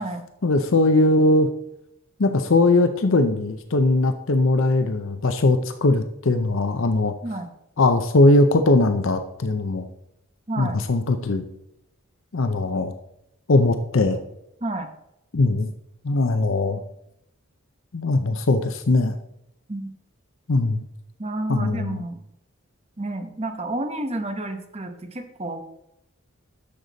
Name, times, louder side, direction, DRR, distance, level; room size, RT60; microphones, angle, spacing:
voice 1, 0.4-1.5 2.2-7.1 7.8-9.9 10.6-11.4 12.3-12.9 13.5-14.2 15.3-15.7 16.0-16.8 17.9-19.2 20.5-20.8 21.5-22.0, left 2 dB, 60° left, 8 dB, 0.6 m, -20 dB
voice 2, 10.5-10.8 14.6-14.9 19.7-19.9 21.2-22.2 23.0-25.6, right 2 dB, 30° right, 6 dB, 1.0 m, -30 dB
10.0 x 6.7 x 4.0 m, 0.80 s
head